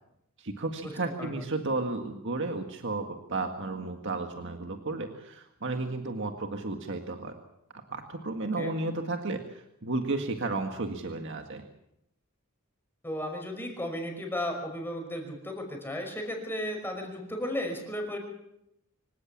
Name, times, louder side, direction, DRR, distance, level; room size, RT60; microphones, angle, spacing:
voice 1, 0.4-7.3 7.9-11.7, right 2 dB, 60° right, 5 dB, 1.8 m, -33 dB
voice 2, 13.0-18.2, left 1 dB, 10° left, 2 dB, 5.5 m, -34 dB
25.0 x 17.5 x 7.3 m, 0.81 s
head